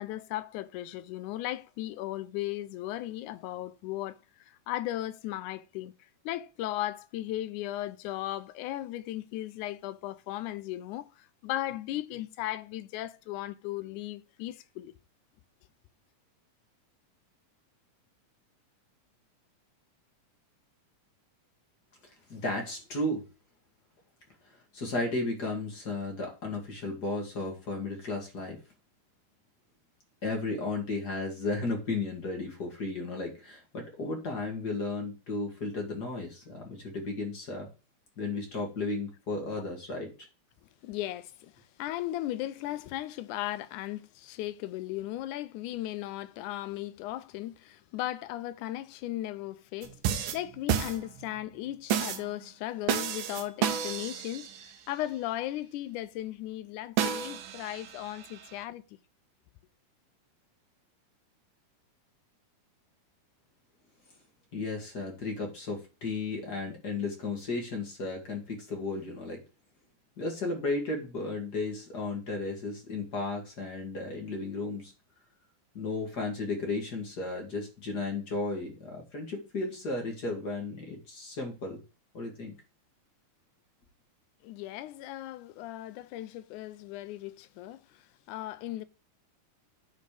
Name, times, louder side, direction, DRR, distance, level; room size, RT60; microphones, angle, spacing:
voice 1, 0.0-5.9 6.3-14.9 40.8-41.5 41.8-58.8 84.4-87.8 88.3-88.9, left 14 dB, 80° left, 2.0 m, -36 dB
voice 2, 22.3-23.2 24.5-28.6 30.2-37.7 38.2-40.1 64.5-69.4 70.2-74.9 75.7-81.8 82.1-82.5, left 3 dB, 35° left, 2.1 m, -34 dB
sound 1, 49.8-51.4 51.9-52.3 52.9-54.8 57.0-58.6, right 9 dB, 85° right, 2.4 m, -31 dB
10.5 x 4.2 x 4.9 m
omnidirectional pair, 3.6 m